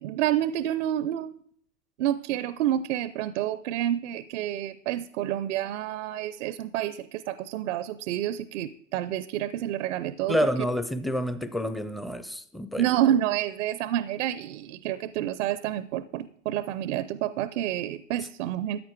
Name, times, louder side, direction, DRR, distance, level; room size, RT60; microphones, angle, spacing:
voice 1, 0.0-1.3 2.0-10.4 12.8-18.8, right 12 dB, 65° right, 0.7 m, -29 dB
voice 2, 10.3-12.9, equal, ahead, 0.5 m, -28 dB
14.0 x 9.2 x 4.6 m
hypercardioid pair, 110°, 40 cm